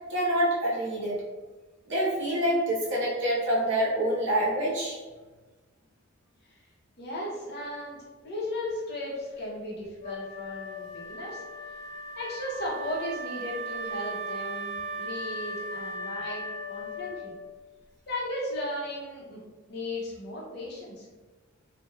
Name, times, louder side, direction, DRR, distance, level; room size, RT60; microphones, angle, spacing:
voice 1, 0.1-1.2 1.9-5.0, right 1 dB, 55° right, -6 dB, 0.8 m, -26 dB
voice 2, 7.0-11.4 12.2-16.4 16.7-17.3 18.1-19.4 19.7-21.1, left 1 dB, 50° left, -5 dB, 0.7 m, -36 dB
Wind instrument woodwind instrument, 10.0-17.6, right 1 dB, 85° left, 0.6 m, -37 dB
3.0 x 2.1 x 2.2 m, 1.3 s
head